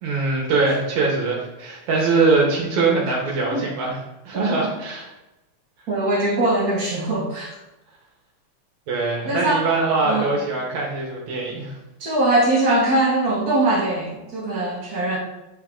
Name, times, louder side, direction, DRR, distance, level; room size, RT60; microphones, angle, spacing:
voice 1, 0.0-5.1 8.9-11.8, right 3 dB, 70° right, -2 dB, 2.5 m, -22 dB
voice 2, 5.9-7.6 9.2-9.7 10.0-10.4 12.0-15.2, right 2 dB, 45° right, -4 dB, 1.2 m, -21 dB
8.5 x 3.6 x 3.7 m, 1.0 s
omnidirectional pair, 3.5 m